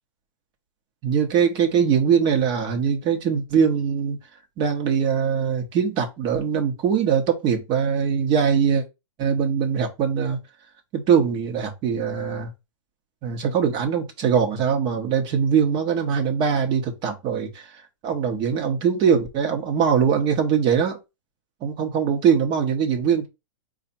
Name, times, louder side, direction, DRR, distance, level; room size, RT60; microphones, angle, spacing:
voice 1, 1.0-4.2 4.6-8.8 9.2-10.4 10.9-12.5 13.2-17.7 18.0-21.0 21.6-23.3, right 7 dB, 30° right, 1.2 m, -22 dB
4.8 x 2.5 x 4.1 m
hypercardioid pair, 140°, 17 cm